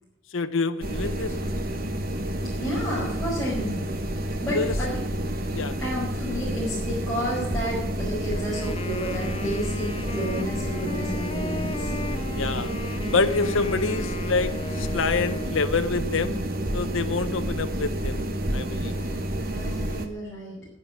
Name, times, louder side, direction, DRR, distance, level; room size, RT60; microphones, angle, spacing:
voice 1, 0.3-1.3 4.5-4.7 5.5-5.7 12.3-12.7 13.1-16.5 16.7-18.9, left 4 dB, 75° left, 9 dB, 0.8 m, -27 dB
sound 1, 0.8-20.1, right 1 dB, 45° right, 1.3 m, -29 dB
voice 2, 2.5-3.8 4.4-5.0 5.8-11.9 18.8-20.7, equal, 5° left, -10 dB, 5.4 m, -31 dB
Wind instrument woodwind instrument, 8.3-15.9, left 3 dB, 30° left, 0.4 m, -37 dB
11.0 x 9.7 x 10.0 m, 0.85 s
head